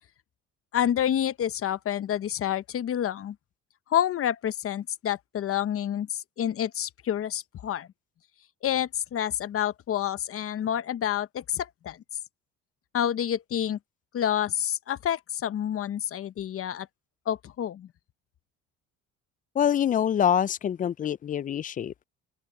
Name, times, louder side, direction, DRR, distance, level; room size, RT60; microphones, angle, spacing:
voice 1, 0.7-3.4 3.9-7.9 8.6-12.0 12.9-13.8 14.1-16.9 17.3-17.9, left 10 dB, 50° left, 1.0 m, -28 dB
voice 2, 19.6-22.1, left 9 dB, 30° left, 0.4 m, -25 dB
open air
cardioid pair, 100°, 30 cm